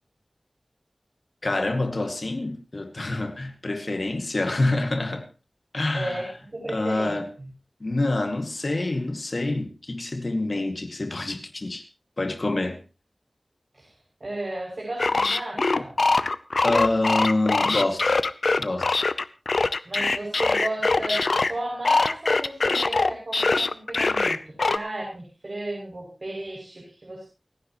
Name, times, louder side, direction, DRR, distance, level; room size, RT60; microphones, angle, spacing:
voice 1, 1.4-5.3 5.7-6.3 6.7-7.3 7.8-11.8 12.2-12.8 16.6-18.0 18.6-18.9, left 2 dB, 60° left, 2.2 m, -26 dB
voice 2, 5.9-7.5 13.7-13.9 14.2-15.9 19.9-27.3, right 1 dB, 55° right, 7.0 m, -34 dB
sound 1, 15.0-21.5 21.8-24.8, left 3 dB, 85° left, 0.7 m, -22 dB
29.0 x 10.0 x 3.1 m
wide cardioid pair, 65°, 0 cm